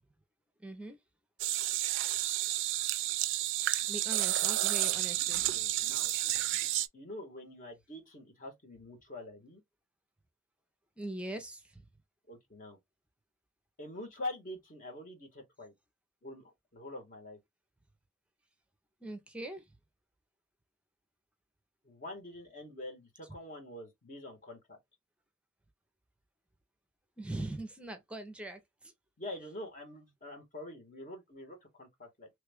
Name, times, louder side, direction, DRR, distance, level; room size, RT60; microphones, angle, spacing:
voice 1, 0.6-1.0 3.9-5.4 11.0-11.9 19.0-19.6 27.2-28.9, right 1 dB, 5° right, 0.6 m, -41 dB
sound 1, 1.4-6.9, right 15 dB, 60° right, 0.3 m, -31 dB
voice 2, 5.5-6.1 6.9-9.6 12.3-12.8 13.8-15.7 16.2-17.4 21.8-24.8 29.2-32.3, left 1 dB, 40° left, 1.2 m, -45 dB
3.2 x 2.3 x 3.4 m
head